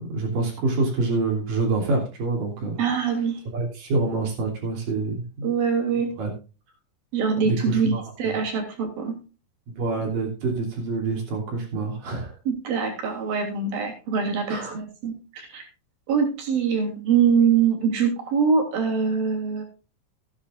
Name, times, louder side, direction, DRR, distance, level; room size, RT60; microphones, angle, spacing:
voice 1, 0.1-2.8 3.5-5.5 6.2-6.3 7.4-8.0 9.7-12.3 14.5-14.8, right 3 dB, 70° right, 1 dB, 4.5 m, -26 dB
voice 2, 2.8-3.4 5.4-6.1 7.1-7.9 8.2-9.2 12.5-15.7 16.1-19.6, right 6 dB, 90° right, 2 dB, 4.8 m, -23 dB
16.0 x 10.0 x 2.5 m, 0.32 s
omnidirectional pair, 4.0 m